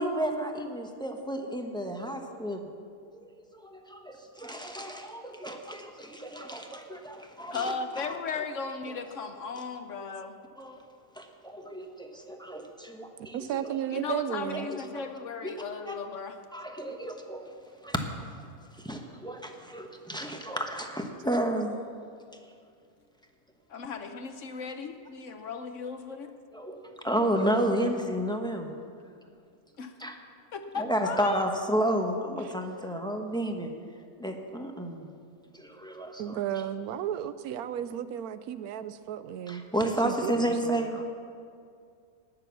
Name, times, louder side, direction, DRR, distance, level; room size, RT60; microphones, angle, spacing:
voice 1, 0.0-2.7 3.2-8.4 8.8-9.0 10.6-10.8 11.1-13.8 14.5-15.1 15.4-15.5 15.9-16.0 16.5-17.5 17.8-18.0 18.3-18.4 18.7-21.8 22.4-22.5 26.5-28.7 30.0-30.2 30.7-33.7 34.2-35.1 35.5-36.4 39.5-41.0, right 1 dB, 5° left, 3 dB, 0.8 m, -32 dB
voice 2, 7.5-10.3 13.9-16.4 23.7-26.3 29.8-29.9 30.5-31.4, left 5 dB, 60° left, 7 dB, 1.1 m, -36 dB
voice 3, 13.2-14.7 36.2-40.9, right 10 dB, 80° right, 13 dB, 1.1 m, -34 dB
18.5 x 6.9 x 6.9 m, 2.3 s
omnidirectional pair, 1.6 m